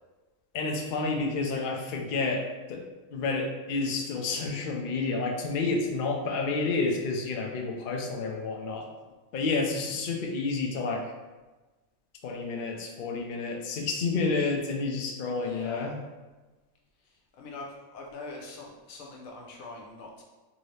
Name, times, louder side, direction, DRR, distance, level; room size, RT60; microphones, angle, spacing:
voice 1, 0.5-2.4 2.7-2.8 3.1-8.9 9.3-11.1 12.2-16.0, left 3 dB, 60° left, 1 dB, 0.5 m, -30 dB
voice 2, 15.4-16.0 17.0-20.2, left 3 dB, 90° left, -1 dB, 1.2 m, -43 dB
3.6 x 2.7 x 3.2 m, 1.2 s
omnidirectional pair, 1.4 m